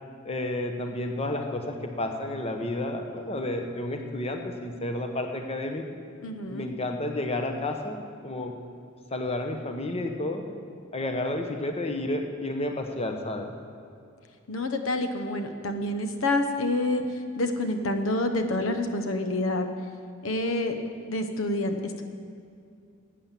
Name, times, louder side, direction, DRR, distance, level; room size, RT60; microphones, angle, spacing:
voice 1, 0.2-5.8 6.5-8.6 9.1-10.4 10.9-13.5, left 1 dB, 30° left, 4 dB, 1.0 m, -31 dB
voice 2, 6.2-6.7 14.5-19.7 20.2-20.8 21.0-22.0, left 2 dB, 80° left, 6 dB, 0.9 m, -28 dB
11.5 x 8.5 x 7.4 m, 2.4 s
head